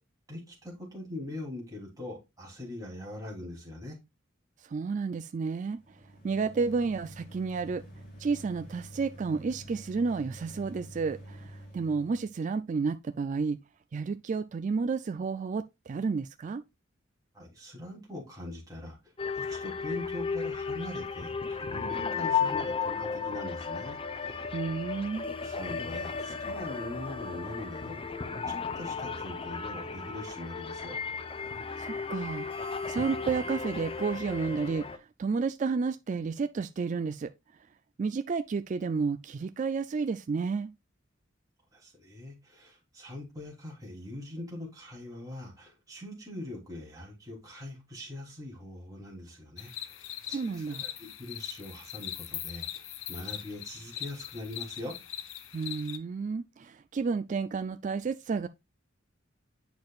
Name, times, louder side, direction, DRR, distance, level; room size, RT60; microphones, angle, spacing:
voice 1, 0.3-4.0 17.3-19.0 19.4-21.3 21.6-24.5 25.4-28.0 28.4-31.0 41.7-52.8 53.1-55.0, left 1 dB, 20° right, 3.3 m, -42 dB
voice 2, 4.6-6.0 6.2-7.8 8.2-13.6 13.9-16.6 24.5-25.3 31.8-37.3 38.0-40.7 50.3-50.8 55.5-58.5, right 4 dB, 40° right, 0.3 m, -31 dB
sound 1, 5.7-12.3, right 1 dB, 45° left, 3.8 m, -48 dB
sound 2, 19.2-35.0, left 5 dB, 30° left, 0.6 m, -34 dB
sound 3, 49.6-56.0, left 12 dB, 75° left, 0.8 m, -41 dB
8.5 x 6.1 x 2.4 m
head